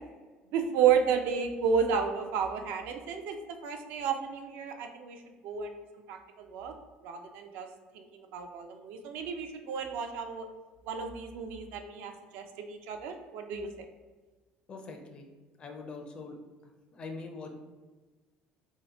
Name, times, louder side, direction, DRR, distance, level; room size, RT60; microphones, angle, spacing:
voice 1, 0.5-3.4 3.6-6.7 7.0-7.7 7.9-8.0 8.3-10.5 10.9-13.9, right 7 dB, 70° right, 5 dB, 0.4 m, -32 dB
voice 2, 14.7-15.3 15.6-16.4 16.9-17.5, left 3 dB, 30° left, 3 dB, 0.4 m, -42 dB
2.8 x 2.0 x 4.0 m, 1.3 s
cardioid pair, 150°, 3 cm